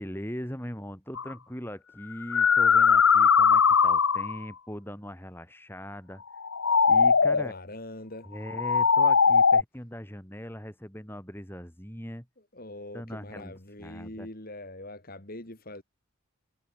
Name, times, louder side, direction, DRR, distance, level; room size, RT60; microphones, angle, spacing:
voice 1, 0.0-6.2 6.9-7.5 8.3-12.3 12.9-13.5 13.8-14.3, equal, 10° left, 4.5 m, -40 dB
sound 1, 1.2-1.3 2.1-4.4 6.3-7.5 8.5-9.6, left 6 dB, 70° left, 1.0 m, -20 dB
voice 2, 7.3-8.3 12.5-15.8, left 1 dB, 40° left, 3.3 m, -42 dB
head